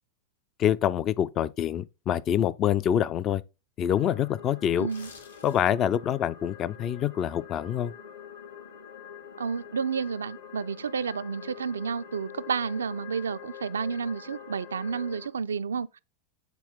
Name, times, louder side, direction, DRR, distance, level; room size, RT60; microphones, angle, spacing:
voice 1, 0.6-3.4 3.8-4.9 5.4-7.9, left 10 dB, 30° left, 0.4 m, -26 dB
sound 1, 3.9-15.3, left 8 dB, 60° left, 1.4 m, -46 dB
sound 2, 4.7-5.9 6.3-6.5, left 4 dB, 75° left, 1.9 m, -50 dB
voice 2, 4.8-5.1 9.4-16.0, right 6 dB, 70° right, 0.3 m, -31 dB
8.1 x 4.0 x 3.8 m
figure-of-eight pair, 90°, 0 cm